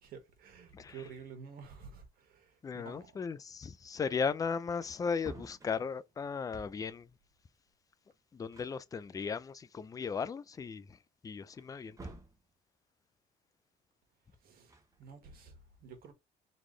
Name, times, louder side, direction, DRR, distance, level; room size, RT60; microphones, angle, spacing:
voice 1, 0.0-3.2 14.4-14.7 15.0-16.1, right 6 dB, 65° right, 1.7 m, -51 dB
voice 2, 2.6-7.1 8.3-11.0 11.2-12.2, left 5 dB, 20° left, 0.4 m, -36 dB
Wood, 4.8-7.0 8.1-8.2 8.5-9.7 10.2-10.3 11.5-12.5 14.5-15.4, right 2 dB, 20° right, 1.0 m, -52 dB
4.0 x 3.2 x 3.1 m
cardioid pair, 110°, 17 cm